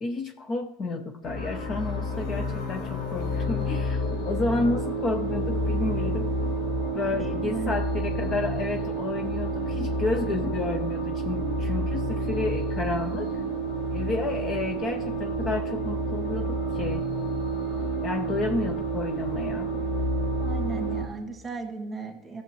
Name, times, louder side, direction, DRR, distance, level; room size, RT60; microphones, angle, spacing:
voice 1, 0.0-6.3 6.9-13.3 13.9-17.0 18.0-19.7, left 2 dB, 30° left, 7 dB, 0.6 m, -31 dB
sound 1, 1.2-21.0, right 1 dB, 70° left, 2.1 m, -29 dB
voice 2, 7.1-7.7 20.4-22.4, right 4 dB, 15° right, 2 dB, 1.9 m, -35 dB
13.5 x 7.0 x 3.1 m, 1.0 s
supercardioid pair, 125°, 0 cm